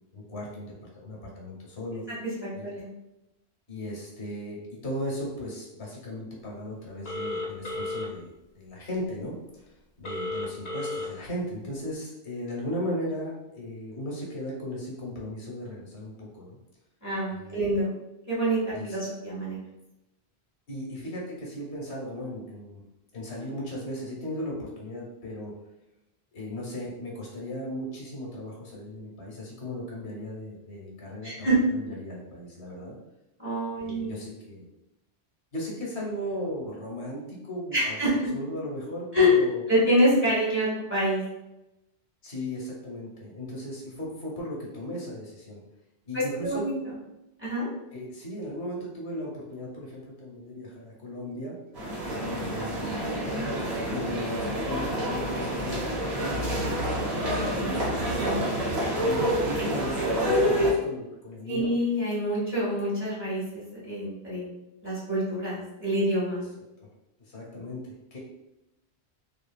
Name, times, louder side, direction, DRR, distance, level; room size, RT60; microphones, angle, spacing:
voice 1, 0.1-2.0 2.5-2.7 3.7-9.7 10.0-16.6 17.3-17.7 18.7-19.0 20.7-22.8 23.1-25.5 26.3-33.0 33.8-34.7 35.5-38.0 38.3-39.6 42.2-45.6 46.0-46.6 47.9-51.5 52.3-53.0 53.9-58.2 59.0-61.7 66.8-66.9 67.2-68.2, equal, 90° left, -3 dB, 1.2 m, -37 dB
voice 2, 2.4-2.9 17.0-17.9 18.3-19.6 31.2-31.6 33.4-34.1 37.7-38.3 39.1-39.3 39.7-41.2 46.1-46.7 47.4-47.7 52.3-52.4 52.8-53.2 57.6-57.7 58.2-58.5 61.5-64.5 64.8-66.4, equal, 10° right, -9 dB, 1.2 m, -26 dB
Telephone, 7.0-8.1 10.0-11.1, left 2 dB, 65° left, 1.0 m, -33 dB
sound 1, 51.7-60.7, equal, 75° right, 1.3 m, -28 dB
2.8 x 2.6 x 2.2 m, 0.90 s
omnidirectional pair, 1.1 m